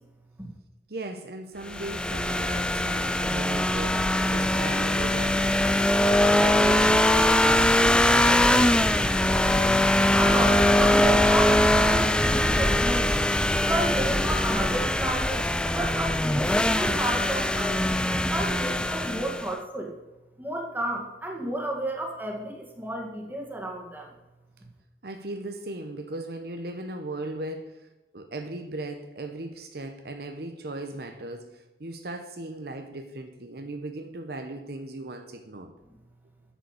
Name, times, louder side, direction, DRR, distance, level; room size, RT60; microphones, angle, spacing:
voice 1, 0.9-5.9 6.3-9.0 25.0-27.9 28.1-35.7, right 2 dB, 60° right, 7 dB, 0.9 m, -37 dB
sound 1, 1.7-19.5, left 1 dB, 5° left, 0.4 m, -22 dB
voice 2, 10.1-13.1 13.6-17.9 18.3-19.9 20.4-24.1, right 1 dB, 10° right, 1 dB, 2.0 m, -32 dB
9.0 x 7.1 x 8.0 m, 1.0 s
head